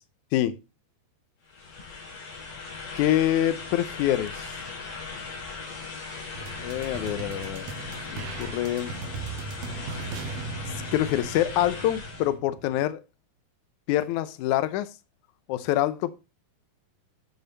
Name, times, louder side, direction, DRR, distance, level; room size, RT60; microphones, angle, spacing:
sound 1, 1.5-12.3, left 4 dB, 60° left, 5.4 m, -38 dB
voice 1, 3.0-4.5 6.6-7.7 8.1-8.9 10.9-13.0 13.9-14.9 15.5-16.1, left 13 dB, 80° left, 1.8 m, -25 dB
sound 2, 6.3-12.9, right 4 dB, 75° right, 2.5 m, -38 dB
12.0 x 6.7 x 4.0 m
omnidirectional pair, 4.4 m